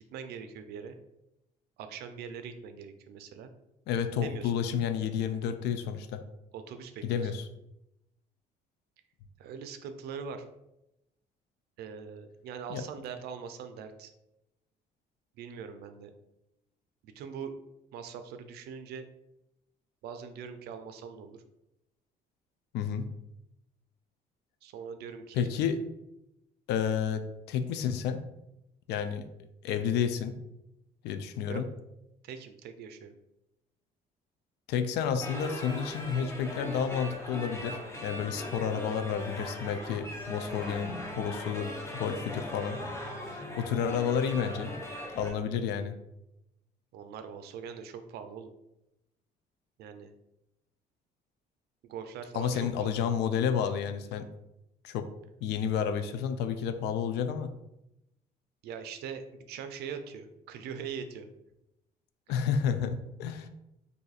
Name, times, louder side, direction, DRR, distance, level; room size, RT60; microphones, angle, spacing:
voice 1, 0.1-1.0 1.8-3.5 4.2-4.5 6.5-7.3 9.4-10.5 11.8-14.1 15.4-16.1 17.0-17.5 17.9-19.0 20.0-21.4 24.6-25.5 31.5-31.6 32.2-33.1 46.9-48.5 49.8-50.1 51.8-52.9 58.6-61.3 62.9-63.0, right 6 dB, 70° right, 8 dB, 0.4 m, -42 dB
voice 2, 3.9-6.2 7.0-7.5 12.7-12.8 22.7-23.1 25.3-25.8 26.7-28.2 28.9-29.3 29.6-30.4 31.0-31.7 34.7-42.8 43.3-44.7 45.1-45.9 52.3-54.3 54.8-55.1 55.4-57.5 62.3-62.9 63.2-63.5, left 7 dB, 80° left, 9 dB, 0.4 m, -30 dB
sound 1, 35.2-45.3, left 1 dB, 15° left, 0.7 m, -39 dB
2.6 x 2.3 x 4.0 m, 0.88 s
cardioid pair, 110°, 17 cm